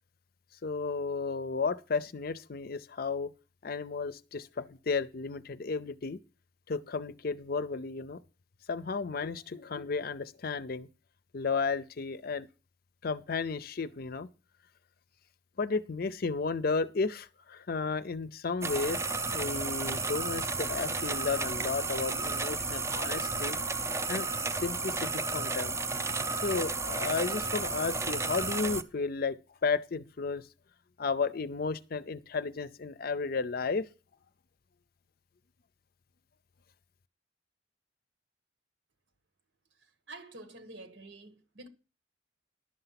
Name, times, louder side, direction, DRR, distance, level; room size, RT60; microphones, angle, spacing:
voice 1, 0.6-3.3 3.6-6.2 6.7-8.2 8.7-10.9 11.3-12.5 13.0-14.3 15.6-19.0 19.3-23.6 24.1-24.3 24.6-25.8 26.4-29.4 29.6-30.4 31.0-33.9, left 4 dB, 55° left, 0.5 m, -33 dB
sound 1, 18.6-28.8, right 3 dB, 15° right, 0.5 m, -32 dB
voice 2, 40.1-41.7, right 2 dB, 80° right, 1.7 m, -48 dB
11.5 x 6.8 x 5.8 m
head